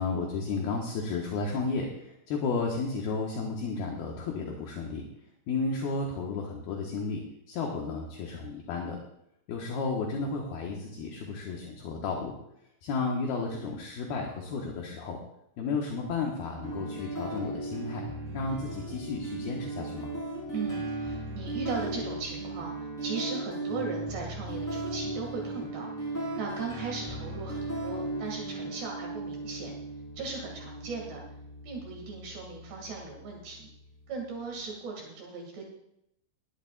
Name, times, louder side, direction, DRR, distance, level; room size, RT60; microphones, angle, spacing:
voice 1, 0.0-5.1 5.5-9.0 9.5-12.4 12.8-15.2 15.6-18.1 18.3-20.1, left 4 dB, 70° left, 0 dB, 2.7 m, -33 dB
sound 1, 16.6-34.6, right 2 dB, 5° left, 3.5 m, -37 dB
voice 2, 20.5-29.7 30.2-31.2 31.6-33.7 34.1-35.7, right 4 dB, 65° right, -1 dB, 4.0 m, -38 dB
19.5 x 12.0 x 2.4 m, 0.80 s
omnidirectional pair, 5.6 m